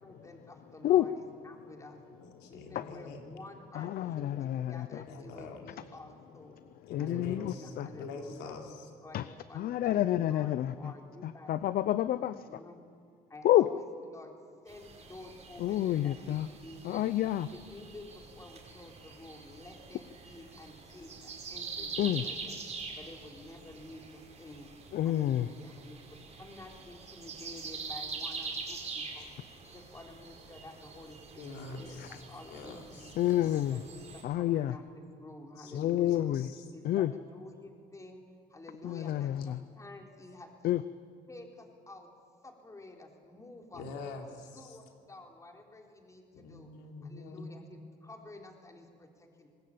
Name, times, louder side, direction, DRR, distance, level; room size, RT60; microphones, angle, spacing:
voice 1, 0.0-2.0 2.5-6.6 7.0-8.5 9.0-11.6 12.1-12.8 13.3-14.3 14.6-17.0 17.5-22.6 23.0-24.7 25.0-26.0 26.4-29.3 29.7-31.5 31.8-33.2 33.7-34.0 34.3-36.2 36.7-38.2 38.5-40.7 41.3-42.1 42.4-43.9 44.5-46.7 47.0-49.5, left 2 dB, 20° left, 2 dB, 3.8 m, -50 dB
voice 2, 2.2-3.2 5.0-5.7 6.8-8.9 31.4-32.1 32.5-33.6 35.6-36.7 43.7-44.8 46.3-47.6, left 3 dB, 90° left, 2 dB, 3.6 m, -45 dB
voice 3, 3.7-5.0 6.9-7.9 9.1-9.3 9.5-10.9 11.2-12.6 13.4-13.7 15.6-16.5 16.8-17.5 22.0-22.2 24.9-25.5 33.2-33.8 34.2-34.8 35.7-36.5 36.8-37.1 38.8-39.6 40.6-40.8, left 13 dB, 60° left, 14 dB, 0.7 m, -29 dB
sound 1, 14.7-34.2, right 4 dB, 40° right, 5.3 m, -45 dB
24.5 x 20.0 x 8.7 m, 2.2 s
cardioid pair, 110°, 17 cm